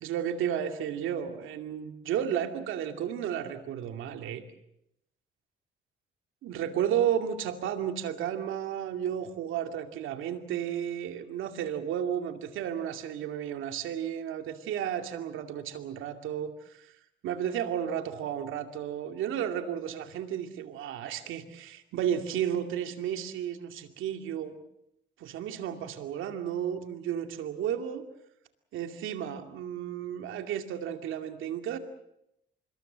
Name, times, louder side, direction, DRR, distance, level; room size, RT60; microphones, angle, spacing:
voice 1, 0.0-4.4 6.4-16.9 17.2-24.6 25.2-28.0 28.7-31.8, right 9 dB, 85° right, 7 dB, 2.5 m, -33 dB
26.0 x 22.0 x 7.5 m, 0.80 s
cardioid pair, 90°, 20 cm